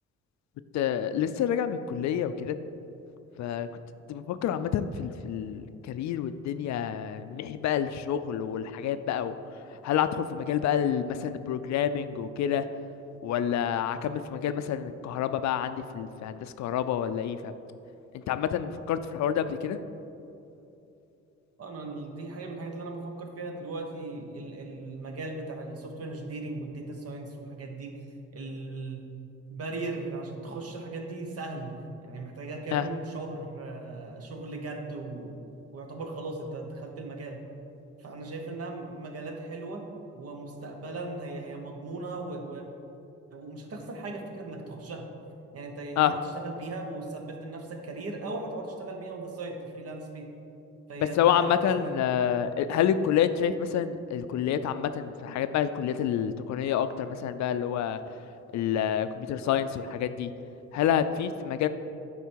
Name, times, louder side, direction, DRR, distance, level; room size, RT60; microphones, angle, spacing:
voice 1, 0.7-2.6 3.4-3.7 4.1-9.3 9.7-12.6 13.2-17.5 18.1-19.8 32.7-32.9 46.0-46.1 51.0-58.0 58.5-60.3 60.7-61.7, left 9 dB, 65° left, 11 dB, 0.4 m, -28 dB
voice 2, 21.6-28.0 28.3-29.0 29.5-31.7 32.0-35.4 35.7-37.4 38.0-39.9 40.1-42.6 43.3-45.1 45.5-50.3 50.9-51.9, right 2 dB, 50° right, 3 dB, 1.1 m, -38 dB
8.1 x 5.0 x 4.6 m, 2.8 s
cardioid pair, 90°, 30 cm